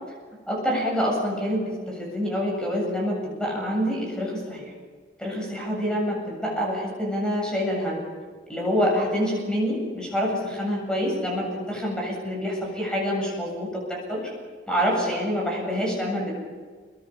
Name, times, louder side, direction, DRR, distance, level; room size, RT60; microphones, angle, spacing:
voice 1, 0.5-4.7 5.2-8.0 8.5-14.2 14.7-16.3, equal, 5° left, -2 dB, 7.9 m, -26 dB
29.5 x 22.5 x 5.6 m, 1.5 s
head